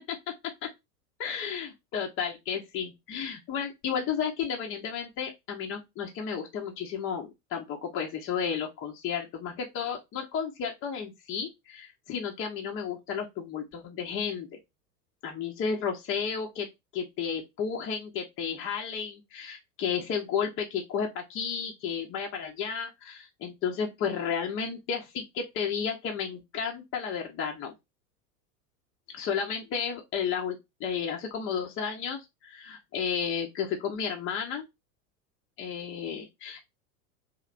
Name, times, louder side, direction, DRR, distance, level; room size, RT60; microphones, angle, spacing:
voice 1, 1.2-14.6 15.2-16.7 16.9-27.7 29.1-34.7 35.6-36.7, left 7 dB, 30° left, 0.9 m, -32 dB
3.2 x 2.8 x 2.5 m
figure-of-eight pair, 90°, 46 cm